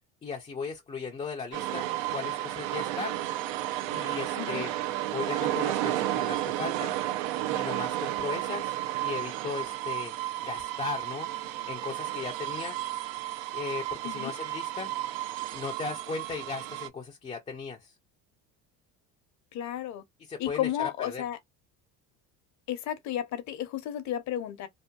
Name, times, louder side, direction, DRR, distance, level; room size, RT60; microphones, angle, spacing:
voice 1, 0.2-1.8 2.1-3.2 3.9-4.7 5.1-7.0 7.5-8.8 9.0-10.1 10.4-11.3 11.7-12.8 13.5-14.9 15.5-17.9 20.3-21.2, left 5 dB, 20° left, 0.4 m, -37 dB
sound 1, 1.5-16.9, right 14 dB, 75° right, 0.5 m, -32 dB
voice 2, 19.5-20.0 20.4-21.4 22.7-24.7, left 11 dB, 50° left, 0.7 m, -33 dB
2.8 x 2.1 x 2.2 m
supercardioid pair, 110°, 37 cm